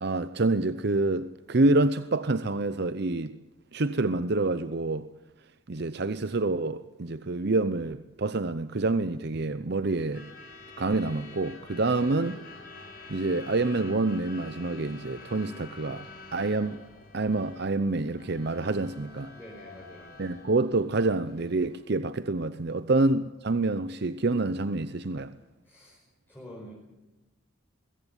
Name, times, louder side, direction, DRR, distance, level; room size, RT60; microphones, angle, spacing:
voice 1, 0.0-3.4 3.7-5.1 5.7-10.2 10.8-12.3 13.1-16.1 16.3-16.8 17.1-19.3 20.2-25.3, right 2 dB, 50° right, 0.7 m, -27 dB
Truck / Alarm, 9.9-21.8, left 3 dB, 45° left, 5.6 m, -48 dB
voice 2, 19.3-20.3 23.0-23.1 25.6-26.7, equal, 10° left, 5.4 m, -48 dB
22.0 x 16.5 x 9.2 m
head